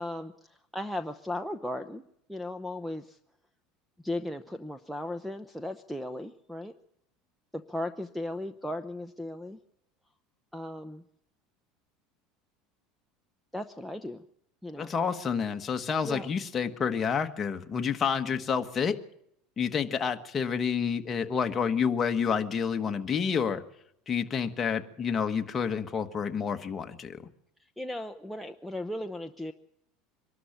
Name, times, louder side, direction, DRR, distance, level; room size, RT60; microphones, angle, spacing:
voice 1, 0.0-2.0 2.3-3.2 4.0-6.7 7.7-9.6 10.5-11.0 13.5-14.2 14.6-14.9 16.0-16.3 27.8-29.5, left 1 dB, ahead, 11 dB, 0.7 m, -36 dB
voice 2, 14.8-19.0 19.6-23.6 24.1-27.2, left 6 dB, 25° left, 6 dB, 1.4 m, -29 dB
23.5 x 12.5 x 8.8 m, 0.74 s
supercardioid pair, 140°, 0 cm